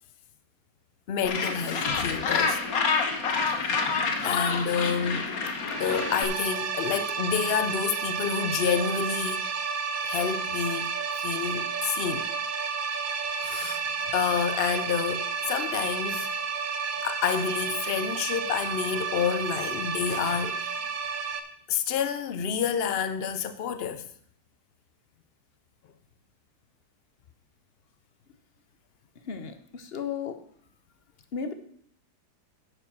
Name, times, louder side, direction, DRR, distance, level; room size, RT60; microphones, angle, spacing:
voice 1, 1.1-2.6 3.6-5.3 5.8-9.5 10.0-10.9 11.2-12.3 13.3-13.8 14.1-16.3 17.0-20.8 21.7-24.1, left 7 dB, 80° left, 0.5 m, -29 dB
Gull seagull, 1.2-6.2, left 4 dB, 60° left, 1.5 m, -28 dB
sound 1, 5.7-21.4, right 5 dB, 60° right, 1.3 m, -31 dB
voice 2, 29.2-30.4 31.3-31.5, left 6 dB, 45° left, 1.0 m, -34 dB
9.8 x 7.0 x 6.1 m
omnidirectional pair, 1.8 m